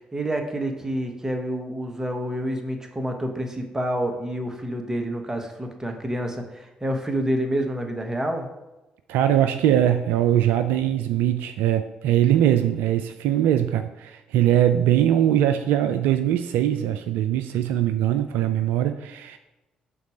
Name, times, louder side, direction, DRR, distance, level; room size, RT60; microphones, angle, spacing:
voice 1, 0.0-8.5, right 1 dB, 15° right, 4 dB, 1.2 m, -28 dB
voice 2, 9.1-19.4, right 11 dB, 70° right, 8 dB, 0.3 m, -21 dB
5.8 x 4.1 x 5.0 m, 1.0 s
hypercardioid pair, 45°, 3 cm